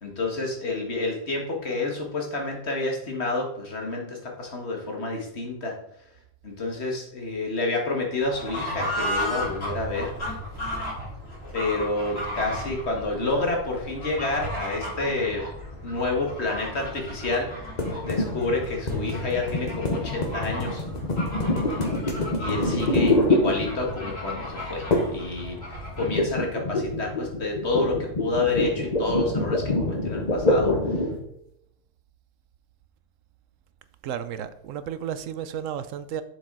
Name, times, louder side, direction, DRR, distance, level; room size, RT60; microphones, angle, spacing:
voice 1, 0.0-5.8 6.4-10.1 11.5-15.4 15.8-17.5 18.0-20.8 22.4-25.6 26.0-31.0, left 2 dB, 55° left, 2.0 m, -29 dB
Fowl / Bird, 8.2-26.2, equal, 85° left, 4.2 m, -35 dB
sound 1, 17.8-24.1 24.9-25.3 25.5-31.2, left 2 dB, 35° left, 1.0 m, -26 dB
voice 2, 34.0-36.2, right 9 dB, 80° right, 1.0 m, -33 dB
7.3 x 7.0 x 3.9 m
omnidirectional pair, 1.3 m